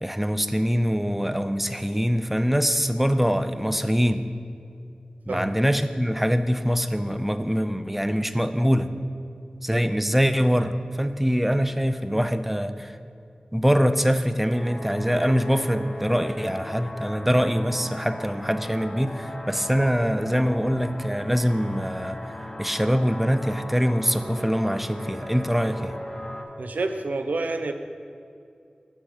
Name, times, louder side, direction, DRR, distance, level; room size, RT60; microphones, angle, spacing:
voice 1, 0.0-4.2 5.3-8.9 9.6-13.0 13.5-22.2 22.6-26.0, equal, 5° right, 10 dB, 0.4 m, -23 dB
sound 1, 14.5-26.4, left 1 dB, 20° left, 0.9 m, -38 dB
voice 2, 26.6-27.7, right 3 dB, 80° right, 7 dB, 0.5 m, -28 dB
6.7 x 6.3 x 4.9 m, 2.4 s
cardioid pair, 40°, 3 cm